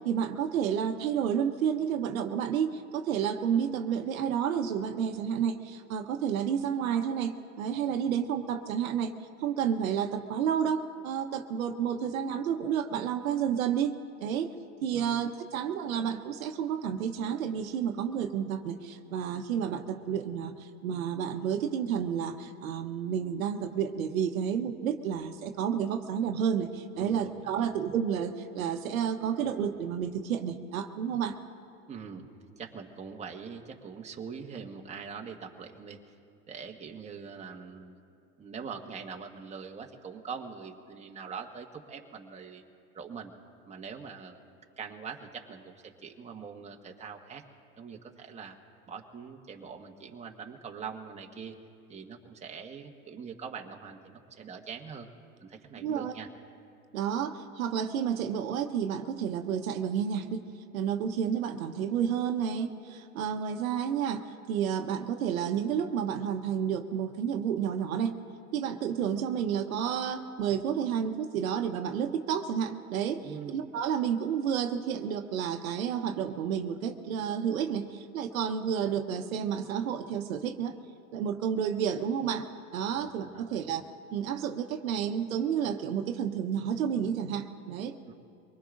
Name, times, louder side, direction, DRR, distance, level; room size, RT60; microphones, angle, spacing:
voice 1, 0.0-9.1 9.4-14.5 14.8-31.4 55.8-56.2 56.9-60.4 60.7-68.2 68.5-80.8 81.1-82.5 82.7-83.8 84.1-87.9, right 8 dB, 80° right, 6 dB, 1.0 m, -30 dB
voice 2, 14.9-15.3 27.0-27.2 27.5-27.7 31.9-32.2 32.6-36.1 36.5-38.0 38.4-42.6 42.9-43.3 43.7-44.5 44.8-47.4 47.8-48.6 48.9-51.6 51.9-55.1 55.4-56.3 73.2-73.5 82.9-83.6 88.1-88.2, right 6 dB, 15° right, 1 dB, 1.3 m, -43 dB
24.0 x 19.5 x 2.6 m, 2.5 s
hypercardioid pair, 105°, 41 cm